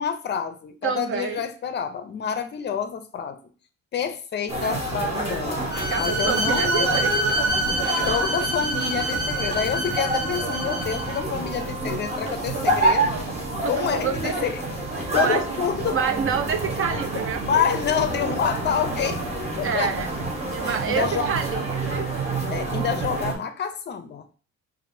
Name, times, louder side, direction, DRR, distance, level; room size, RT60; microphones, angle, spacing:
voice 1, 0.0-3.4 3.9-5.6 6.0-6.9 8.1-13.1 13.7-14.6 14.9-16.0 17.4-19.2 19.5-19.9 20.6-21.2 22.5-24.3, left 7 dB, 40° left, 9 dB, 0.5 m, -27 dB
voice 2, 0.8-1.4 5.9-7.5 8.0-8.1 13.6-14.5 15.0-15.6 15.9-17.8 19.6-20.1 20.5-22.1, right 7 dB, 45° right, 7 dB, 0.6 m, -28 dB
sound 1, 4.5-23.4, right 2 dB, 20° right, 1.0 m, -28 dB
Bowed string instrument, 5.7-11.2, right 1 dB, 80° right, 1.3 m, -26 dB
5.2 x 2.5 x 2.6 m, 0.38 s
cardioid pair, 145°, 29 cm